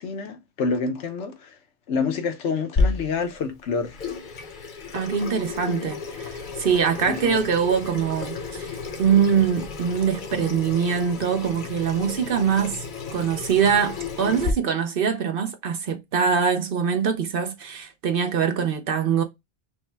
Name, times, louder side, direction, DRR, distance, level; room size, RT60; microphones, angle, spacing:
voice 1, 0.0-1.6 1.9-3.9 7.1-7.4, left 4 dB, 80° left, 1.1 m, -27 dB
Water tap faucet / Sink (filling or washing), 2.8-14.5, left 4 dB, 50° left, 0.8 m, -32 dB
voice 2, 4.9-19.2, right 7 dB, 60° right, 0.8 m, -23 dB
5.4 x 2.1 x 3.3 m
omnidirectional pair, 1.2 m